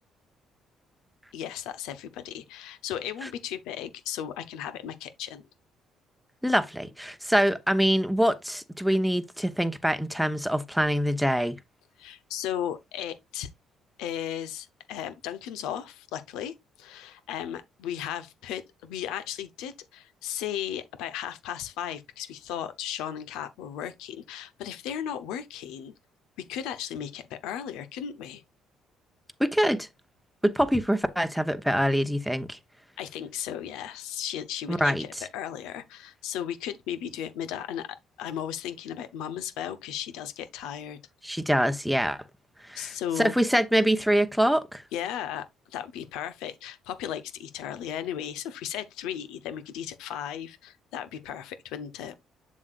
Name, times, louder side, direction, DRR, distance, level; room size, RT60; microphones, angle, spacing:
voice 1, 1.3-5.5 12.0-13.5 14.0-25.9 26.4-28.4 33.0-41.0 42.7-43.3 44.9-45.5 45.7-52.2, left 10 dB, 75° left, 0.8 m, -35 dB
voice 2, 6.4-11.6 29.4-29.9 30.4-32.6 34.7-35.0 41.2-42.2 42.7-42.9 43.2-44.8, equal, ahead, 0.9 m, -24 dB
7.2 x 6.4 x 2.5 m
hypercardioid pair, 60°, 0 cm